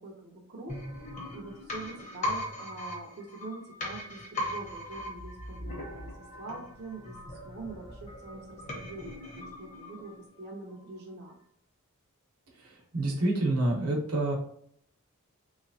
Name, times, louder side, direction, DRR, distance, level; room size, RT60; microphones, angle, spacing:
voice 1, 0.0-0.8 1.3-11.3, right 2 dB, 50° right, -2 dB, 0.7 m, -44 dB
sound 1, 0.7-10.4 10.7-10.8, left 1 dB, 35° left, 1.0 m, -39 dB
voice 2, 12.5-14.3, right 2 dB, 85° right, 0 dB, 1.0 m, -28 dB
3.3 x 3.0 x 2.7 m, 0.65 s
head